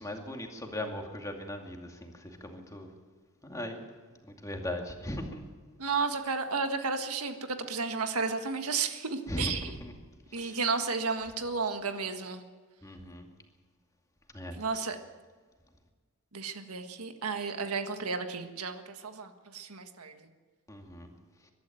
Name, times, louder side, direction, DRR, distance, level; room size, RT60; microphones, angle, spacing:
voice 1, 0.0-2.9 3.4-3.8 4.4-5.4 9.3-9.9 10.3-10.6 12.8-13.3 14.3-14.6 20.7-21.1, left 1 dB, 15° left, 2 dB, 2.3 m, -38 dB
voice 2, 5.8-9.8 10.3-12.4 14.5-15.0 16.3-20.1, right 4 dB, 85° right, 7 dB, 1.6 m, -33 dB
23.0 x 12.5 x 9.2 m, 1.5 s
head